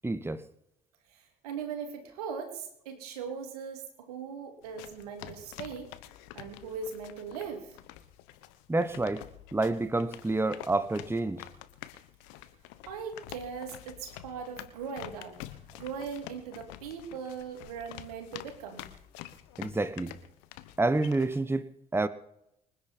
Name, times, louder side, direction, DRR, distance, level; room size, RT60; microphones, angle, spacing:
voice 1, 0.0-0.4 8.7-9.2 9.5-11.4 19.6-20.1 20.8-22.1, right 2 dB, 10° right, 1.2 m, -28 dB
voice 2, 1.1-5.9 6.3-7.8 12.9-18.9, right 6 dB, 80° right, 2.9 m, -40 dB
sound 1, 4.6-21.4, left 14 dB, 70° left, 1.2 m, -48 dB
25.0 x 10.0 x 4.4 m
hypercardioid pair, 50°, 19 cm